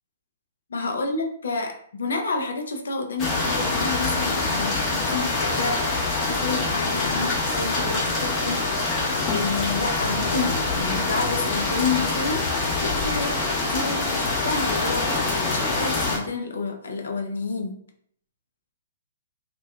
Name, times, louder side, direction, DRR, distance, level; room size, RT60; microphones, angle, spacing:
voice 1, 0.7-5.8 6.2-9.0 9.3-12.4 12.8-13.4 13.7-17.8, left 4 dB, 70° left, 4 dB, 0.4 m, -29 dB
sound 1, 3.2-16.2, left 3 dB, 25° left, 0.7 m, -25 dB
2.5 x 2.2 x 2.3 m, 0.64 s
figure-of-eight pair, 120°, 0 cm